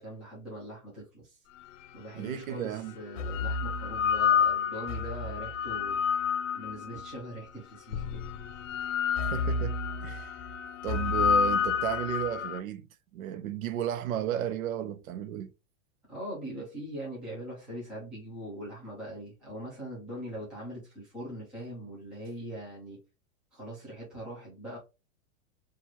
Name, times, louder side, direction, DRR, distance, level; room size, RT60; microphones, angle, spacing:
voice 1, 0.0-1.4 1.9-6.0 6.5-8.3 16.1-23.0 23.5-24.8, equal, ahead, 0.3 m, -41 dB
sound 1, 1.8-1.9 2.9-7.2 7.9-12.6, left 6 dB, 65° left, 0.6 m, -29 dB
voice 2, 2.1-3.0 9.2-10.4 10.8-12.9 13.1-15.5, right 10 dB, 90° right, 0.7 m, -33 dB
4.4 x 2.5 x 2.8 m
supercardioid pair, 165°, 40 cm